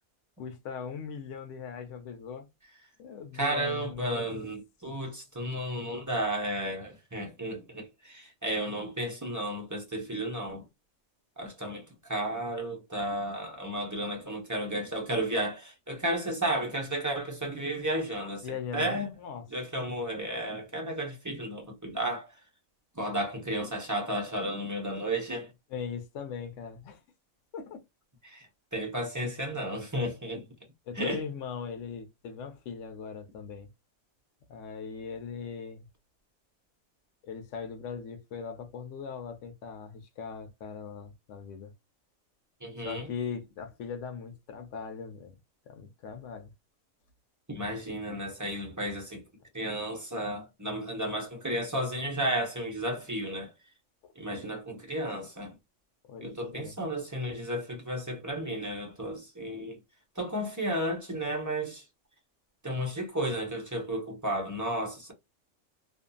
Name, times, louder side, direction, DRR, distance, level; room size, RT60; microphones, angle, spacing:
voice 1, 0.4-2.5 3.0-4.3 18.4-19.4 25.7-27.0 27.5-27.8 30.9-33.7 34.5-35.9 37.2-41.7 42.8-45.3 45.7-46.5 56.1-56.7, left 6 dB, 70° left, 0.9 m, -40 dB
voice 2, 3.3-10.6 11.4-19.1 19.5-22.3 23.0-25.5 28.2-28.5 28.7-30.4 31.0-31.2 42.6-43.1 47.5-49.2 49.5-53.5 54.2-55.5 56.2-59.8 60.2-61.8 62.6-65.1, right 1 dB, 20° right, 0.5 m, -33 dB
2.7 x 2.5 x 2.2 m
omnidirectional pair, 1.4 m